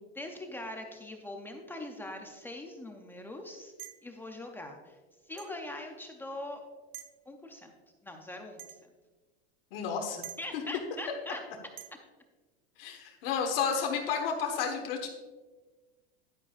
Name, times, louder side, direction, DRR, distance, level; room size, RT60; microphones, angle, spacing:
voice 1, 0.2-3.7 4.0-5.0 5.3-6.6 7.3-7.7 8.0-8.8 10.4-11.4, left 1 dB, 5° left, 3 dB, 0.4 m, -42 dB
sound 1, 3.8-4.1 5.4-5.6 6.9-7.2 8.6-8.8 10.2-10.4 11.8-12.0, right 11 dB, 50° right, 0.8 m, -46 dB
voice 2, 9.7-10.2 12.8-15.1, left 6 dB, 65° left, 2 dB, 1.4 m, -31 dB
11.0 x 9.5 x 2.4 m, 1.3 s
supercardioid pair, 155°, 31 cm